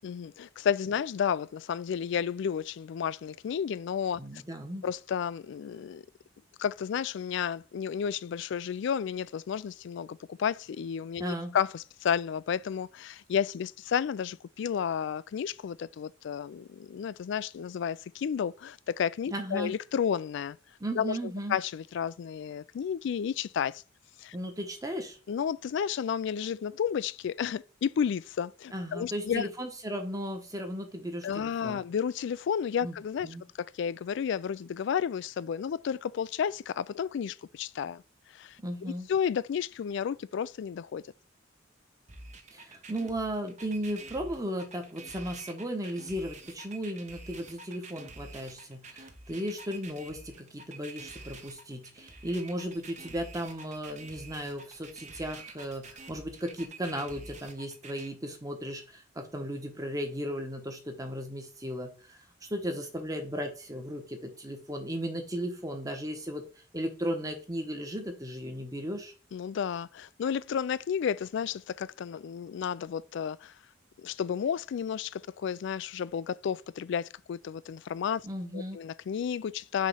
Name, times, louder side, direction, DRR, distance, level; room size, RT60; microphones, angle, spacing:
voice 1, 0.0-4.4 4.8-6.0 6.6-20.6 21.0-21.2 21.5-23.8 24.2-24.3 25.3-29.5 31.2-33.3 33.8-38.0 38.3-38.6 39.1-41.0 69.3-73.5 74.0-78.3 78.5-79.9, left 7 dB, 65° left, 0.3 m, -32 dB
voice 2, 4.2-4.8 11.2-11.6 19.3-19.7 20.8-21.6 24.3-25.2 28.7-31.8 32.8-33.0 33.2-33.4 38.6-39.1 42.5-62.2 62.5-66.4 66.7-69.1 78.2-78.8, equal, 20° right, 1.1 m, -36 dB
sound 1, 42.1-58.1, right 3 dB, 35° right, 0.9 m, -47 dB
6.4 x 3.1 x 5.5 m
head